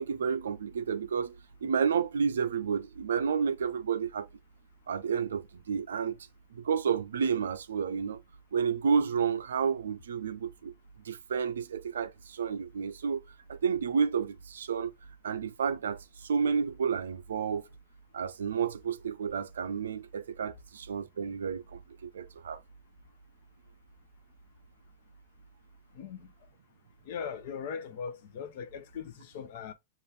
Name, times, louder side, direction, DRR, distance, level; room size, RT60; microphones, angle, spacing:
voice 1, 0.0-1.3 1.6-4.3 4.9-6.2 6.5-8.2 8.5-10.7 11.0-13.2 13.5-14.9 15.2-17.7 18.1-22.6, right 6 dB, 65° right, 0.4 m, -31 dB
voice 2, 25.9-26.5 27.0-29.7, left 7 dB, 50° left, 0.7 m, -40 dB
5.1 x 2.5 x 3.2 m
figure-of-eight pair, 90°, 0 cm